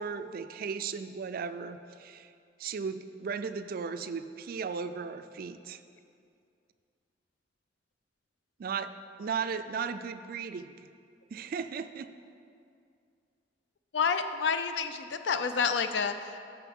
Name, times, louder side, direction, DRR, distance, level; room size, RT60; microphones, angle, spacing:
voice 1, 0.0-2.3 2.6-5.8 8.6-8.9 9.2-10.7 11.3-12.1, right 5 dB, 55° right, 11 dB, 0.4 m, -36 dB
voice 2, 13.9-16.4, left 5 dB, 70° left, 9 dB, 0.5 m, -29 dB
11.5 x 6.7 x 3.6 m, 2.4 s
head